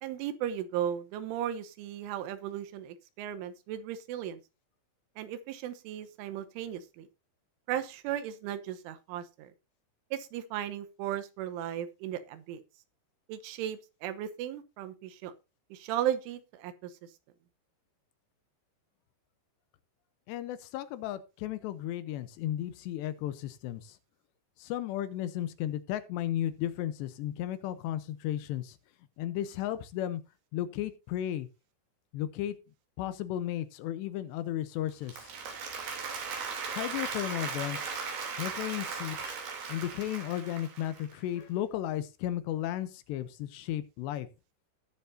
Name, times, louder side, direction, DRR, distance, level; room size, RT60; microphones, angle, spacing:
voice 1, 0.0-4.4 5.2-7.1 7.7-9.5 10.1-12.6 13.3-15.3 15.7-16.9, right 10 dB, 80° right, 11 dB, 3.4 m, -36 dB
voice 2, 20.3-24.0 24.6-28.8 29.2-30.2 30.5-31.5 32.1-32.6 33.0-35.3 36.7-38.0 38.4-39.4 39.7-44.3, left 12 dB, 80° left, 13 dB, 2.7 m, -34 dB
Applause, 34.9-41.1, right 5 dB, 55° right, 4.6 m, -37 dB
19.0 x 7.0 x 2.7 m, 0.28 s
omnidirectional pair, 5.6 m